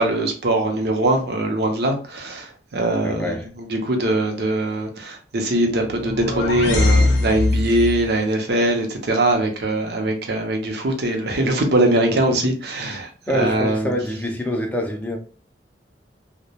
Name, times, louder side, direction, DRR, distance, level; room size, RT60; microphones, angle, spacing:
voice 1, 0.0-3.4 3.7-13.9, right 1 dB, 65° right, 0.6 m, -22 dB
voice 2, 3.0-3.5 12.3-12.4 13.3-15.2, left 1 dB, 10° left, 0.4 m, -25 dB
sound 1, 5.8-8.1, left 2 dB, 85° left, 0.5 m, -20 dB
2.2 x 2.1 x 2.8 m
head